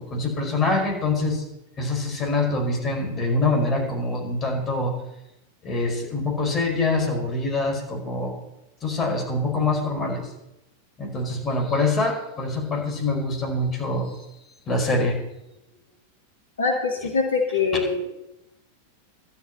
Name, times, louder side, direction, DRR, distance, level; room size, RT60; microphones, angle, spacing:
voice 1, 0.0-1.4 1.8-4.9 5.6-8.4 8.8-10.3 11.0-14.2 14.6-15.2 17.7-17.8, left 2 dB, 25° left, 1 dB, 5.0 m, -25 dB
voice 2, 16.6-18.0, left 4 dB, 70° left, 1 dB, 1.8 m, -23 dB
12.5 x 7.2 x 9.9 m, 0.91 s
figure-of-eight pair, 90°, 0 cm